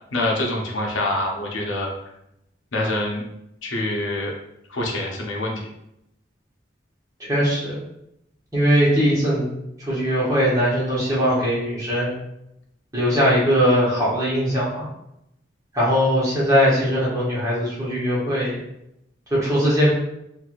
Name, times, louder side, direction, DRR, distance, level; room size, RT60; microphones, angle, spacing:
voice 1, 0.1-1.9 2.7-3.2 3.6-4.3 4.7-5.5, left 1 dB, 90° left, -1 dB, 0.7 m, -25 dB
voice 2, 7.2-7.8 8.5-9.5 9.8-12.1 12.9-14.9 15.7-18.6 19.3-19.9, equal, 20° right, -8 dB, 1.1 m, -20 dB
3.1 x 2.6 x 2.5 m, 0.81 s
head